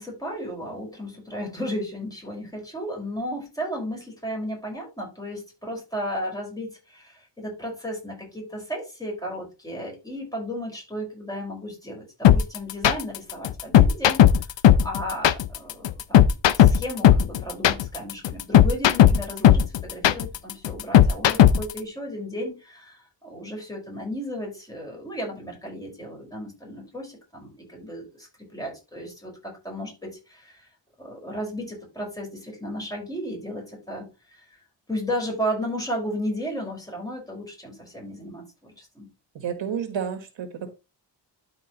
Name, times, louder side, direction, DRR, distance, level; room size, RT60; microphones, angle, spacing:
voice 1, 0.0-14.2 14.8-30.7 31.0-34.6 34.9-38.4 38.8-39.1, equal, 10° left, -1 dB, 5.1 m, -34 dB
sound 1, 12.2-21.8, left 11 dB, 75° left, 0.7 m, -15 dB
voice 2, 39.3-40.7, right 7 dB, 80° right, 7 dB, 1.6 m, -30 dB
12.5 x 5.0 x 3.0 m, 0.28 s
wide cardioid pair, 135°, 44 cm